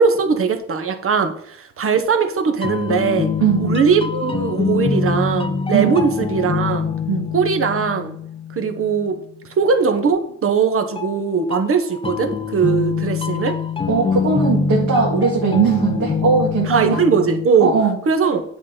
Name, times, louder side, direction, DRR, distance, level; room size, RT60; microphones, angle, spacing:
voice 1, 0.0-3.3 3.6-6.9 7.3-8.2 8.5-9.2 9.6-13.6 16.7-17.7 18.1-18.4, right 5 dB, 45° right, 7 dB, 1.3 m, -19 dB
sound 1, 2.4-9.1 11.0-17.5, left 5 dB, 20° left, 0.5 m, -24 dB
voice 2, 3.4-3.8 5.7-5.9 7.1-7.3 13.9-17.0 17.6-18.0, right 5 dB, 65° right, -5 dB, 2.4 m, -19 dB
8.5 x 4.1 x 5.2 m, 0.66 s
cardioid pair, 90°, 30 cm